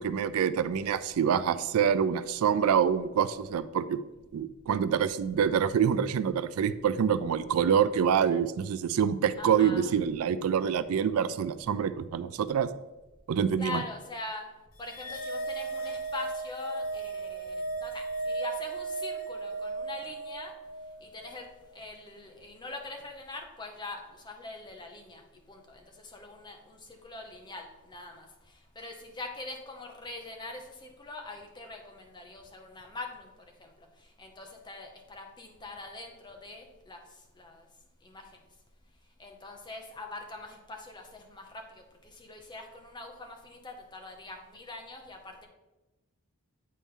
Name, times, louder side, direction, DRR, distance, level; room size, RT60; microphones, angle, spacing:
voice 1, 0.0-4.0 4.3-12.7 13.3-13.8, right 7 dB, 85° right, 14 dB, 0.3 m, -26 dB
voice 2, 9.4-9.8 13.6-14.4 14.8-17.5 17.8-20.5 21.0-21.5 21.7-25.2 25.5-28.3 28.8-33.3 33.6-33.7 34.2-37.0 37.4-37.6 38.0-38.2 39.2-41.6 42.0-45.5, left 2 dB, 20° left, 3 dB, 0.8 m, -43 dB
sound 1, 14.8-21.4, right 3 dB, 70° left, 0.7 m, -36 dB
8.4 x 4.1 x 3.7 m, 1.0 s
head